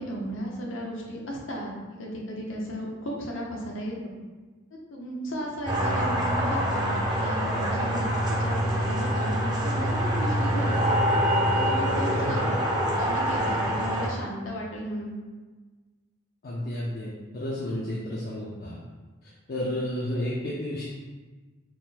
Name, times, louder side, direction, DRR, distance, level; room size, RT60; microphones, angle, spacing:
voice 1, 0.0-4.1 4.9-8.1 8.4-11.0 11.5-12.5 13.0-15.1, equal, 75° left, -1 dB, 0.8 m, -35 dB
sound 1, 5.7-14.1, equal, 20° right, 0.6 m, -25 dB
voice 2, 16.4-18.8 19.5-20.9, left 1 dB, 50° left, -5 dB, 0.5 m, -31 dB
4.4 x 2.1 x 4.0 m, 1.3 s
head